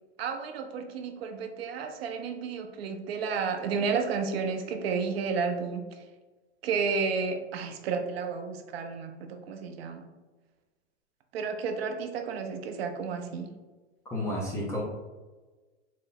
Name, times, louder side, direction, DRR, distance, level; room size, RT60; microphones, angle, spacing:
voice 1, 0.2-5.8 6.6-10.1 11.3-13.5, right 5 dB, 60° right, 5 dB, 0.6 m, -32 dB
voice 2, 14.1-14.8, left 1 dB, 10° left, -5 dB, 0.4 m, -31 dB
3.9 x 2.1 x 3.8 m, 1.2 s
hypercardioid pair, 135°, 35 cm